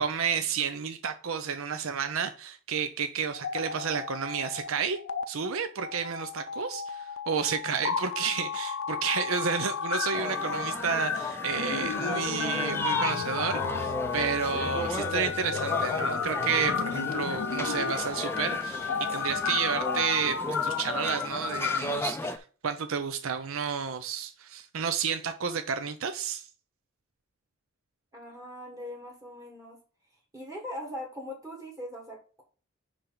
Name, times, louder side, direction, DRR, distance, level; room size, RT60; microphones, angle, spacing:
voice 1, 0.0-5.0 5.3-26.5, right 6 dB, 70° right, 0.6 m, -31 dB
sound 1, 3.3-4.7 5.0-5.2 5.8-21.8, left 6 dB, 70° left, 0.6 m, -32 dB
sound 2, 10.1-22.4, left 2 dB, 10° left, 0.4 m, -35 dB
voice 2, 28.1-29.8 30.3-32.4, left 1 dB, 15° right, 1.5 m, -40 dB
10.0 x 3.4 x 3.9 m
head